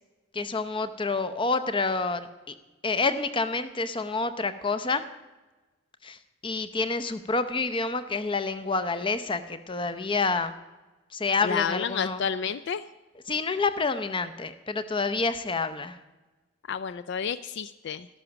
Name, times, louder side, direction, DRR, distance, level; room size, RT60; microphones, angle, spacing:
voice 1, 0.3-2.5 2.8-5.0 6.0-6.2 6.4-10.5 11.1-12.2 13.3-16.0, left 3 dB, 25° left, 11 dB, 0.7 m, -28 dB
voice 2, 11.4-12.9 16.7-18.1, left 7 dB, 55° left, 14 dB, 0.4 m, -30 dB
12.5 x 12.5 x 5.9 m, 1.2 s
head